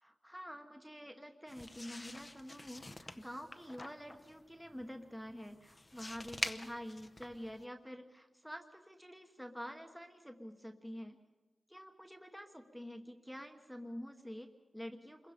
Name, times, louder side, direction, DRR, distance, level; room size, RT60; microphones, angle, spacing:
voice 1, 0.0-11.2 11.7-15.3, equal, ahead, 5 dB, 1.2 m, -48 dB
sound 1, 1.5-7.6, left 2 dB, 15° left, 0.8 m, -46 dB
28.0 x 22.0 x 5.2 m, 1.2 s
wide cardioid pair, 145°, 0 cm